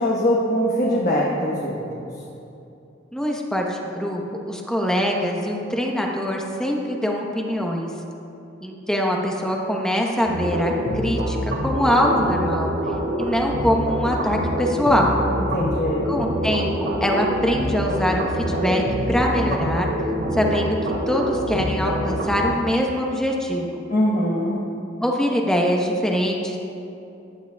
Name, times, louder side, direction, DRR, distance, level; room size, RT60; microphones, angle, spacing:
voice 1, 0.0-2.1 15.3-16.1 23.9-24.6, equal, 40° left, -4 dB, 1.2 m, -22 dB
voice 2, 3.1-4.2 4.5-7.9 8.6-12.7 13.2-15.1 16.1-19.9 20.3-20.8 21.1-23.8 25.0-26.6, equal, 5° left, 0 dB, 1.0 m, -23 dB
sound 1, 10.3-22.4, equal, 75° right, 2.7 m, -25 dB
16.5 x 11.0 x 2.3 m, 2.8 s
head